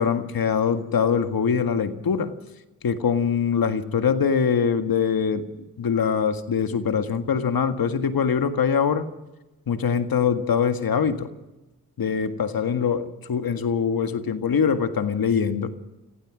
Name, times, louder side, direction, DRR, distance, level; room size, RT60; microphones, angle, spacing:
voice 1, 0.0-2.3 2.8-5.5 5.8-9.1 9.7-11.3 12.0-15.7, left 6 dB, 65° left, 9 dB, 1.8 m, -23 dB
26.0 x 16.0 x 6.3 m, 1.0 s
cardioid pair, 50°, 38 cm